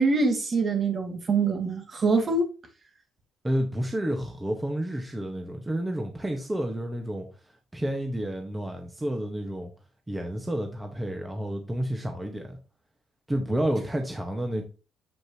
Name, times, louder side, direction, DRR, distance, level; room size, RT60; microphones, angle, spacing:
voice 1, 0.0-2.5, right 3 dB, 40° right, 2.3 m, -24 dB
voice 2, 3.4-9.7 10.1-12.6 13.3-14.6, right 1 dB, 15° right, 1.4 m, -30 dB
7.8 x 6.4 x 3.0 m
cardioid pair, 90°, 0 cm